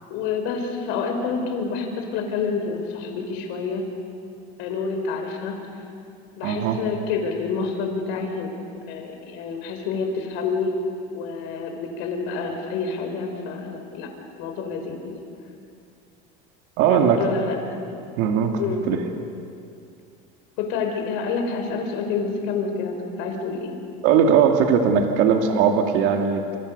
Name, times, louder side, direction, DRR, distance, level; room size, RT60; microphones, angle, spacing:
voice 1, 0.1-3.9 4.6-5.8 6.4-8.5 8.9-10.8 11.1-14.1 14.4-15.1 16.9-17.6 18.6-18.8 20.6-23.7, left 5 dB, 75° left, 3 dB, 5.1 m, -28 dB
voice 2, 6.4-6.8 16.8-17.2 18.2-18.5 18.9-19.0 24.0-26.6, right 7 dB, 70° right, 4 dB, 2.5 m, -19 dB
28.0 x 27.0 x 6.9 m, 2.4 s
cardioid pair, 150°, 20 cm